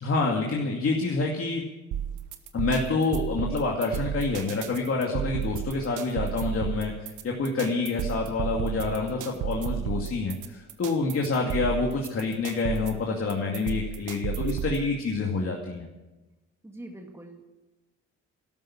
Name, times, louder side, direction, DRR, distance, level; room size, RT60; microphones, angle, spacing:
voice 1, 0.0-1.6 2.5-15.9, left 3 dB, 50° left, -1 dB, 2.4 m, -27 dB
sound 1, 1.9-14.9, right 9 dB, 80° right, 1.3 m, -33 dB
voice 2, 16.6-17.4, right 1 dB, 10° right, 2 dB, 1.9 m, -43 dB
13.0 x 12.0 x 8.7 m, 1.1 s
cardioid pair, 90°, 30 cm